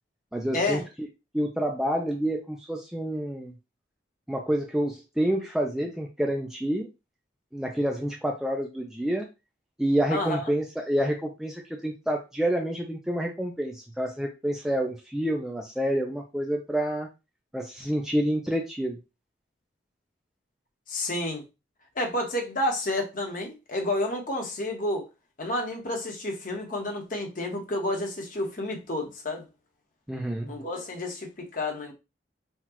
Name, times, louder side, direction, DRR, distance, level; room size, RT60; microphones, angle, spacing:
voice 1, 0.3-0.8 1.3-3.5 4.3-6.9 7.5-9.3 9.8-17.1 17.5-19.0 30.1-30.5, right 1 dB, 5° right, 0.4 m, -28 dB
voice 2, 10.1-10.4 20.9-21.4 21.9-25.1 25.4-29.5 30.5-31.9, left 1 dB, 50° left, 1.1 m, -30 dB
5.7 x 2.3 x 3.0 m
head